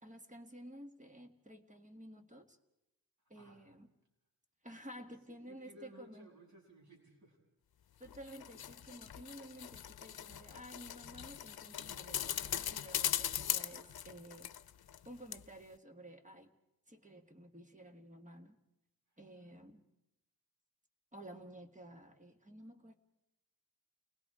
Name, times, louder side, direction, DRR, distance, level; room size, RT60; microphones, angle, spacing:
voice 1, 0.0-2.6 3.3-3.9 4.6-6.3 8.0-14.5 15.1-16.5 16.9-18.6 19.2-19.8 21.1-22.9, right 1 dB, 20° right, 5 dB, 1.7 m, -53 dB
voice 2, 5.0-7.4 19.1-19.2, equal, 50° right, -1 dB, 7.0 m, -59 dB
sound 1, 8.0-15.0 15.3-15.4, left 10 dB, 85° left, 0.7 m, -40 dB
29.5 x 20.5 x 4.9 m, 0.88 s
wide cardioid pair, 115°, 36 cm